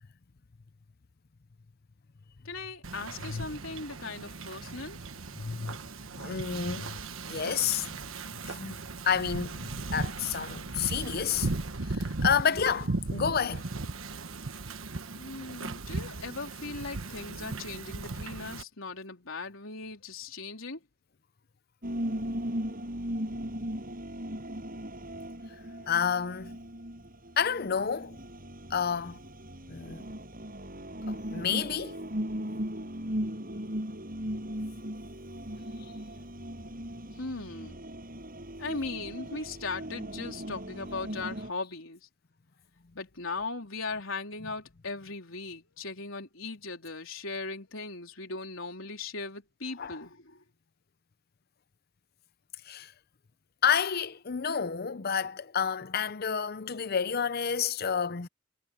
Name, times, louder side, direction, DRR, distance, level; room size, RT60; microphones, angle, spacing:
voice 1, 2.4-5.0 15.1-20.8 25.8-25.9 37.2-37.8 38.6-42.0 42.9-50.4, left 3 dB, 75° left, 3.9 m, -38 dB
Wind / Ocean, 2.8-18.6, right 3 dB, 80° right, 1.3 m, -37 dB
voice 2, 5.4-5.8 6.1-7.0 7.3-8.1 8.4-8.8 9.0-11.5 11.9-13.6 25.9-26.6 27.4-28.2 28.7-29.2 29.7-30.1 31.1-32.0 49.8-50.0 52.6-52.9 53.6-58.3, left 7 dB, 50° left, 0.6 m, -30 dB
sound 1, 21.8-41.5, equal, 45° right, 7.9 m, -38 dB
head